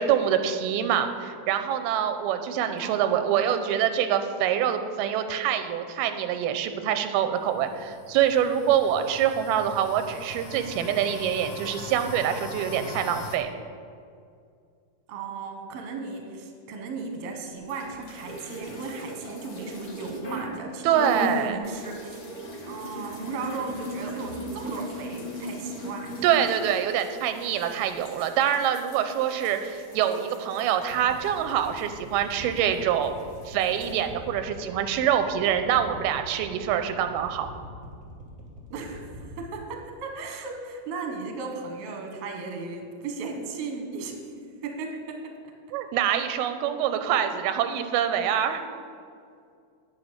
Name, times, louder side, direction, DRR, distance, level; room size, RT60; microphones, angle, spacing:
voice 1, 0.0-13.5 20.8-21.6 26.2-33.1 33.5-37.5 45.7-48.6, right 9 dB, 90° right, 8 dB, 2.6 m, -25 dB
voice 2, 2.8-3.9 15.1-22.2 22.7-26.4 38.7-44.2 44.6-45.3, right 4 dB, 55° right, 2 dB, 1.9 m, -36 dB
sound 1, 7.4-13.4, left 4 dB, 70° left, 2.6 m, -41 dB
sound 2, 17.6-20.6 20.9-32.8 33.0-34.0, equal, 45° left, 1.1 m, -38 dB
sound 3, 30.9-39.4, right 1 dB, 15° right, 1.5 m, -43 dB
9.6 x 9.3 x 6.5 m, 2.3 s
omnidirectional pair, 4.4 m